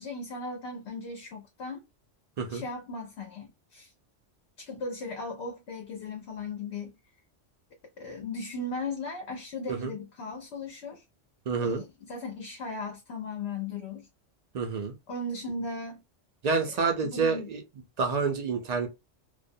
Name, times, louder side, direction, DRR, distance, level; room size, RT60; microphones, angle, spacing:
voice 1, 0.0-1.8 2.5-3.9 4.6-7.0 8.0-11.0 11.6-14.1 15.1-16.0 16.6-16.7 17.0-17.5, left 2 dB, 65° left, 0.8 m, -37 dB
voice 2, 11.5-11.8 14.5-14.9 16.4-17.6 18.0-18.9, right 4 dB, 50° right, 0.5 m, -28 dB
2.4 x 2.1 x 2.6 m
omnidirectional pair, 1.2 m